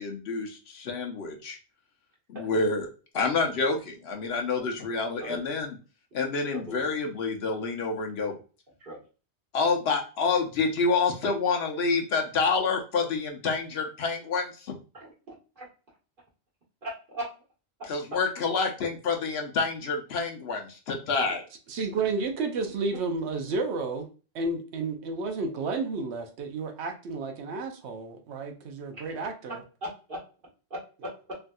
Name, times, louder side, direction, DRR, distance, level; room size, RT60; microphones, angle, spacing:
voice 1, 0.0-1.6 2.3-2.9 3.1-5.8 6.1-8.3 9.5-14.7 17.9-21.4, left 4 dB, 70° left, 2 dB, 0.9 m, -28 dB
voice 2, 6.5-6.9 8.8-9.0 15.0-15.1 15.6-15.7 16.8-17.3 29.8-30.2 30.7-31.3, equal, 55° right, -4 dB, 1.5 m, -37 dB
voice 3, 21.7-24.1 24.3-29.6, right 3 dB, 90° right, 6 dB, 0.9 m, -31 dB
3.4 x 2.6 x 2.2 m, 0.34 s
omnidirectional pair, 1.1 m